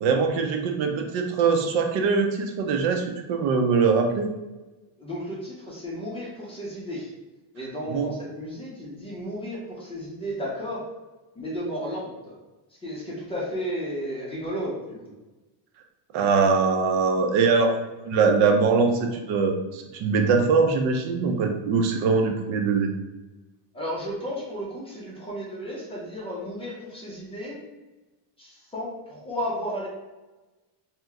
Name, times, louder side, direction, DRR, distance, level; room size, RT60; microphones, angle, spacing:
voice 1, 0.0-4.3 7.9-8.1 16.1-22.9, right 4 dB, 70° right, 4 dB, 0.6 m, -22 dB
voice 2, 5.0-7.1 7.5-10.8 11.3-12.4 12.8-15.0 23.7-27.6 28.4-29.9, equal, 10° left, -6 dB, 0.5 m, -33 dB
2.8 x 2.1 x 3.5 m, 1.1 s
cardioid pair, 160°, 48 cm